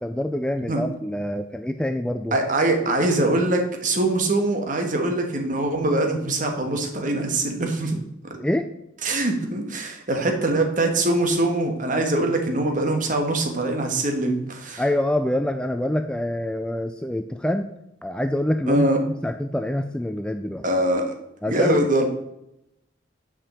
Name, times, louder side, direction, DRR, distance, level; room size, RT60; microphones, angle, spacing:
voice 1, 0.0-2.3 8.4-8.7 14.8-17.7 18.0-18.9 19.2-20.6 21.4-21.8, left 1 dB, 5° left, 7 dB, 0.3 m, -25 dB
voice 2, 2.3-8.0 8.3-8.4 9.0-14.8 18.7-19.0 20.6-21.1 21.5-22.0, right 2 dB, 45° right, 4 dB, 1.4 m, -23 dB
7.4 x 5.1 x 7.3 m, 0.84 s
head